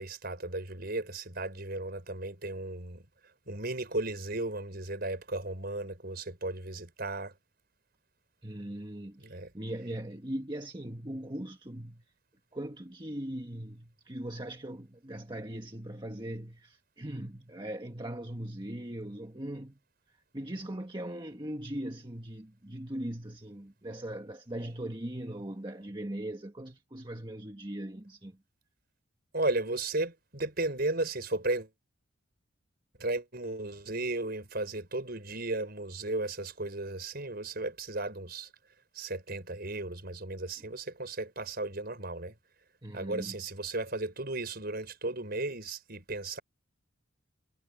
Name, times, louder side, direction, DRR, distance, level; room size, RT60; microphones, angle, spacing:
voice 1, 0.0-3.0 3.5-7.3 9.2-9.5 29.3-31.7 33.0-38.5 38.9-42.3 42.9-46.4, right 2 dB, 50° right, 5.5 m, -35 dB
voice 2, 8.4-12.0 12.5-19.8 20.1-28.4 42.8-43.4, right 1 dB, 20° right, 1.6 m, -40 dB
head